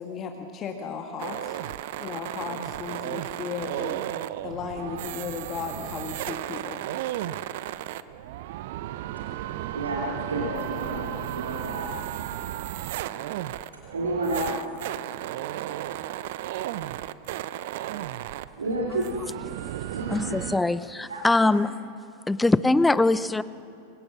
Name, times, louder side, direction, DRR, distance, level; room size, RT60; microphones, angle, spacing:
voice 1, 0.0-1.6 2.0-4.0 4.4-6.8, left 6 dB, 30° left, 3 dB, 1.8 m, -35 dB
sound 1, 1.2-20.6, right 13 dB, 50° right, 0.7 m, -34 dB
voice 2, 9.7-12.1 13.9-14.7 18.6-19.1 19.9-20.3 21.1-21.6, right 2 dB, 75° right, -1 dB, 3.0 m, -30 dB
voice 3, 20.1-21.8 22.3-23.4, left 2 dB, 5° left, 17 dB, 0.7 m, -22 dB
28.0 x 24.0 x 6.2 m, 2.5 s
figure-of-eight pair, 90°, 0 cm